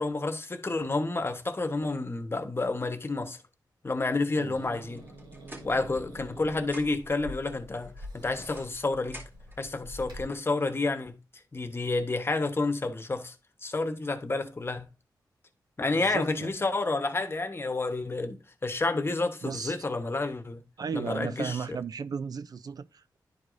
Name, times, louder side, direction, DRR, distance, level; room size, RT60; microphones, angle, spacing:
voice 1, 0.0-3.4 3.8-5.1 5.6-9.2 9.6-11.2 11.5-13.3 13.6-14.9 15.8-20.6 20.9-21.6, left 3 dB, 30° left, 1.0 m, -30 dB
Growling / Hiss, 4.5-10.2, equal, 85° right, 2.8 m, -46 dB
sound 1, 5.0-6.3 6.6-7.2 8.0-9.6, equal, 30° right, 2.3 m, -49 dB
voice 2, 15.9-16.5 19.4-19.8 20.8-23.2, right 6 dB, 60° right, 0.4 m, -35 dB
11.0 x 4.7 x 2.6 m
cardioid pair, 80°, 8 cm